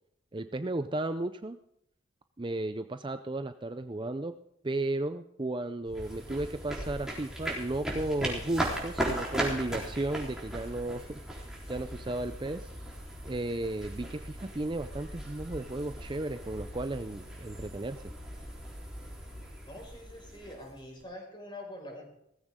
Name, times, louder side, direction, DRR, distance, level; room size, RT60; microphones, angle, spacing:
voice 1, 0.3-1.6 2.4-4.3 4.6-11.2 11.7-12.7 13.3-18.0, right 2 dB, 25° right, 10 dB, 0.5 m, -34 dB
sound 1, 5.9-21.0, right 1 dB, 5° right, 3.7 m, -38 dB
voice 2, 19.7-22.0, left 1 dB, 25° left, 1 dB, 5.4 m, -45 dB
17.5 x 15.0 x 3.7 m, 0.76 s
head